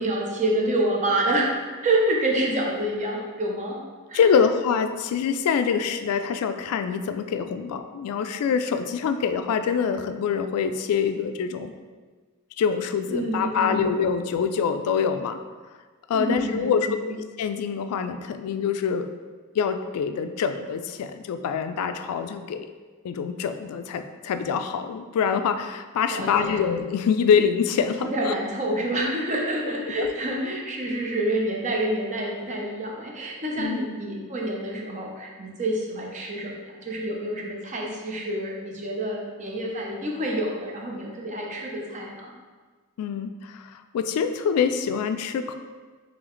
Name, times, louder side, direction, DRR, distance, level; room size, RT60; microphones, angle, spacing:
voice 1, 0.0-1.5 1.8-3.8 4.1-4.3 13.1-13.9 16.1-17.1 26.1-26.6 28.0-42.3, right 1 dB, 35° right, -1 dB, 0.6 m, -27 dB
voice 2, 4.1-11.7 12.6-15.4 16.1-19.1 19.6-22.7 23.0-28.3 30.0-30.1 33.6-33.8 43.0-45.5, left 6 dB, 85° left, 9 dB, 0.3 m, -25 dB
3.8 x 3.3 x 3.1 m, 1.4 s
head